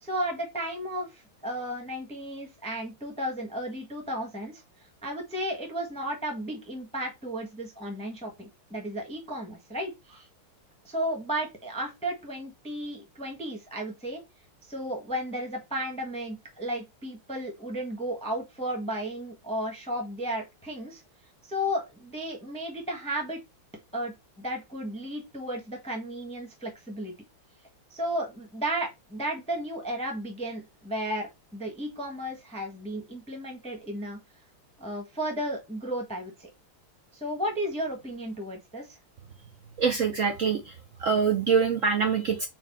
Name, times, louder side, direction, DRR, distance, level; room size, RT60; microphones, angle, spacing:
voice 1, 0.0-4.6 5.0-10.3 10.8-14.2 14.7-21.0 21.4-23.4 23.9-27.1 27.9-34.2 34.8-36.5 37.1-39.0, equal, 5° left, 1.0 m, -34 dB
voice 2, 39.8-40.7 41.0-42.5, right 6 dB, 75° right, 0.7 m, -24 dB
4.6 x 3.9 x 5.5 m
omnidirectional pair, 2.4 m